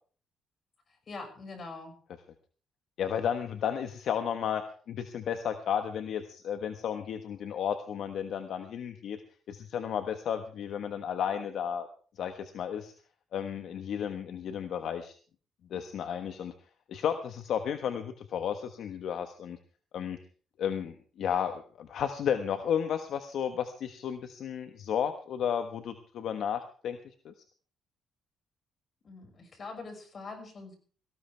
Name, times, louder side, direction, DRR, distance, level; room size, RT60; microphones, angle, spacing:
voice 1, 1.1-1.9 29.0-30.8, left 3 dB, 45° left, 5 dB, 6.1 m, -43 dB
voice 2, 3.0-9.2 9.5-11.9 12.2-12.9 13.3-15.1 15.7-16.5 16.9-19.6 19.9-20.2 20.6-27.0 27.2-27.3, left 8 dB, 70° left, 8 dB, 1.3 m, -33 dB
18.5 x 16.0 x 3.4 m, 0.42 s
cardioid pair, 90°, 0 cm